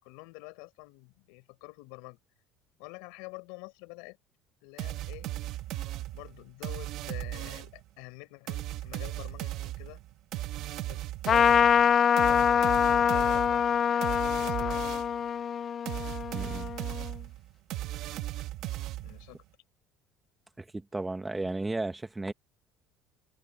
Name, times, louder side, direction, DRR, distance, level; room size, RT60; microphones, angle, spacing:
voice 1, 0.0-2.2 2.8-4.2 4.6-5.3 6.1-10.0 10.8-11.7 12.2-14.9 19.0-19.4, left 28 dB, 90° left, 6.0 m, -47 dB
sound 1, 4.8-7.8 8.5-15.2 15.9-19.4, right 15 dB, 65° right, 1.9 m, -37 dB
Trumpet, 11.3-17.1, left 8 dB, 35° left, 0.3 m, -25 dB
voice 2, 16.3-16.7 20.6-22.3, right 2 dB, 10° right, 1.4 m, -34 dB
cardioid pair, 125°, 0 cm